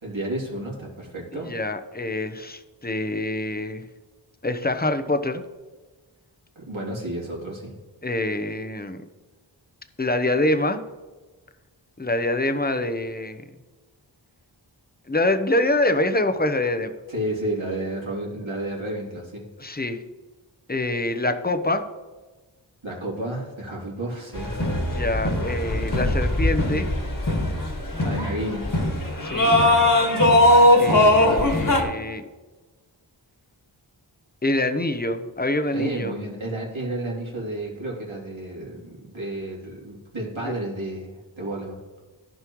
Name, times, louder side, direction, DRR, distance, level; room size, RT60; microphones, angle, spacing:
voice 1, 0.0-1.5 6.5-7.7 17.1-19.5 22.8-24.6 28.0-28.7 35.7-41.8, right 1 dB, 80° right, -3 dB, 2.9 m, -31 dB
voice 2, 1.5-3.8 4.4-5.4 8.0-9.0 10.0-10.8 12.0-13.4 15.1-16.9 19.6-20.0 20.7-21.8 24.8-26.9 29.2-29.6 30.8-32.2 34.4-36.1 40.4-40.5, left 2 dB, 20° left, 8 dB, 0.8 m, -25 dB
sound 1, 24.3-31.8, left 1 dB, 45° left, 1.8 m, -20 dB
14.5 x 5.5 x 3.1 m, 1.2 s
wide cardioid pair, 40°, 47 cm